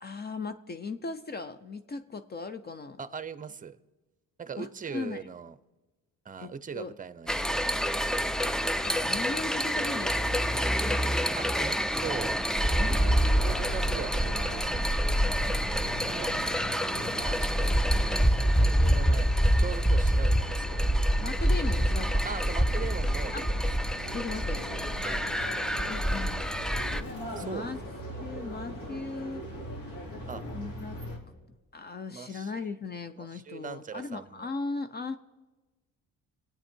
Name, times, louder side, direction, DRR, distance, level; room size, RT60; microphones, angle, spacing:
voice 1, 0.0-3.0 4.6-5.2 6.4-6.9 8.8-11.1 12.8-13.7 21.2-22.2 23.3-23.4 24.1-24.7 25.9-26.5 27.4-27.8 28.2-29.4 30.5-31.0 31.7-35.2, left 4 dB, 30° left, 0.7 m, -38 dB
voice 2, 3.0-3.8 4.4-5.5 6.2-7.6 11.3-12.3 12.6-14.9 15.4-19.3 19.6-21.0 22.2-23.6 25.0-25.2 27.4-27.7 30.3-30.5 32.1-32.5 33.2-34.5, right 6 dB, 25° right, 0.7 m, -41 dB
sound 1, 7.3-27.0, equal, ahead, 0.4 m, -27 dB
Marseille quiet street, 12.6-31.2, equal, 65° left, 3.6 m, -40 dB
25.5 x 8.9 x 4.5 m
cardioid pair, 95°, 33 cm